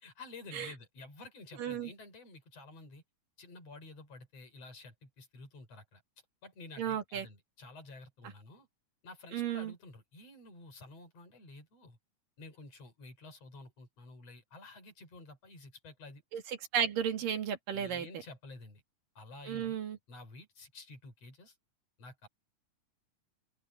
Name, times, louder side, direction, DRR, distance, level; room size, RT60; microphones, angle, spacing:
voice 1, 0.0-3.0 3.4-6.0 6.4-8.7 9.0-12.0 12.4-16.2 17.7-18.8 19.2-21.6 22.0-22.3, left 3 dB, 50° left, 6.2 m, -51 dB
voice 2, 1.6-1.9 6.8-7.3 9.3-9.7 16.3-18.1 19.5-20.0, right 8 dB, 85° right, 3.9 m, -34 dB
open air
omnidirectional pair, 3.8 m